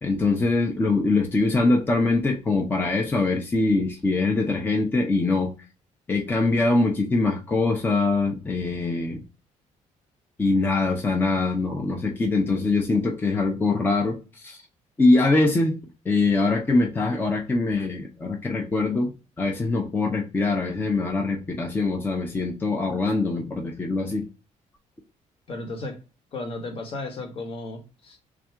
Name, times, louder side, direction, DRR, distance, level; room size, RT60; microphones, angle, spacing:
voice 1, 0.0-5.5 6.1-9.2 10.4-14.6 15.0-15.8 16.1-19.1 19.4-24.2, left 3 dB, 15° left, 0.5 m, -23 dB
voice 2, 25.5-26.0 26.3-28.2, left 2 dB, 45° left, 0.9 m, -34 dB
3.5 x 2.5 x 4.4 m
cardioid pair, 160°, 13 cm